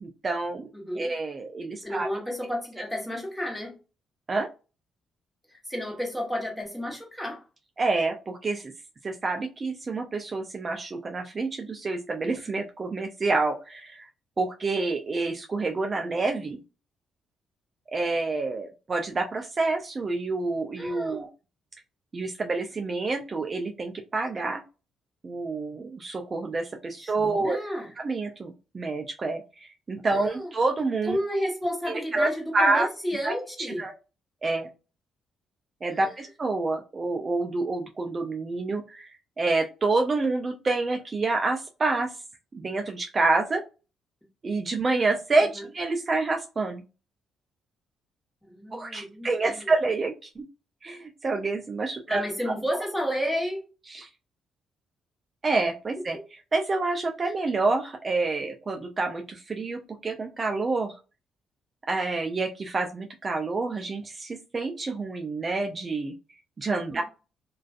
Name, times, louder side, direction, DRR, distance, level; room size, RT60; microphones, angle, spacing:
voice 1, 0.0-0.7 1.0-2.1 4.3-4.5 7.8-8.7 9.0-14.1 14.4-16.6 17.9-21.3 22.1-24.6 25.2-27.6 28.0-31.2 31.9-32.9 33.2-33.4 33.8-33.9 34.4-34.7 35.8-39.1 39.4-42.1 42.5-43.6 44.4-46.8 48.7-50.4 50.8-52.5 53.9-54.1 55.4-56.2 56.5-61.0 61.9-66.1 66.6-67.0, right 3 dB, 35° right, 0.4 m, -28 dB
voice 2, 1.8-3.8 5.5-7.4 20.8-21.2 27.0-27.9 30.1-30.5 31.0-33.8 35.9-36.2 45.6-45.7 48.5-49.7 52.1-53.6 56.1-56.2 66.9-67.0, equal, 5° left, 1.1 m, -32 dB
2.4 x 2.3 x 2.4 m
cardioid pair, 90°, 0 cm